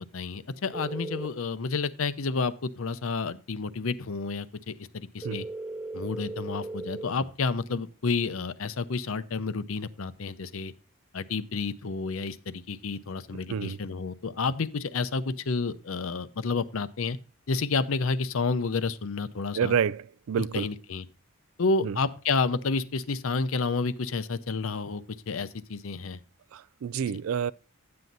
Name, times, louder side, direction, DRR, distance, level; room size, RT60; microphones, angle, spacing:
voice 1, 0.0-5.5 5.9-10.7 11.1-17.2 17.5-19.7 20.5-21.0 21.6-26.2, left 4 dB, 75° left, 0.7 m, -30 dB
sound 1, 0.7-1.3 5.2-7.1, right 2 dB, 5° right, 0.8 m, -37 dB
voice 2, 13.3-13.8 19.5-20.7 21.8-22.0 26.5-27.5, right 7 dB, 75° right, 0.3 m, -29 dB
10.5 x 7.7 x 4.0 m
head